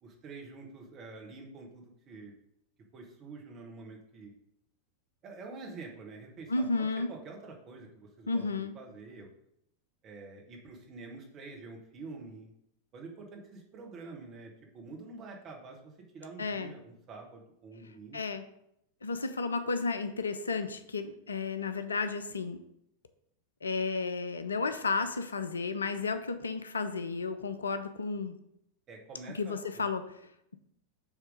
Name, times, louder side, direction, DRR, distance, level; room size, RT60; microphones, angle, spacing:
voice 1, 0.0-2.3 2.9-4.3 5.2-9.3 10.0-12.5 12.9-18.2 28.9-29.8, right 3 dB, 30° right, 1 dB, 1.5 m, -47 dB
voice 2, 6.5-7.1 8.3-8.7 16.4-16.7 18.1-18.4 19.0-22.6 23.6-28.3 29.4-30.6, left 4 dB, 75° left, 10 dB, 0.5 m, -33 dB
7.2 x 3.3 x 5.2 m, 0.78 s
figure-of-eight pair, 90°, 0 cm